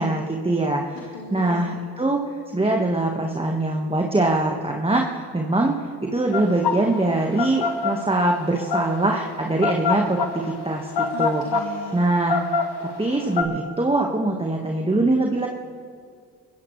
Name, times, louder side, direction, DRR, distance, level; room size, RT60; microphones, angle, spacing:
voice 1, 0.0-1.0 1.3-2.2 2.5-11.4 11.9-12.4 12.8-15.5, right 2 dB, 10° right, 1 dB, 1.6 m, -23 dB
voice 2, 0.9-1.7 11.1-12.0, left 6 dB, 75° left, 4 dB, 1.3 m, -37 dB
sound 1, 6.3-13.4, left 5 dB, 55° left, 1.4 m, -25 dB
21.0 x 16.0 x 3.3 m, 2.1 s
hypercardioid pair, 50°, 48 cm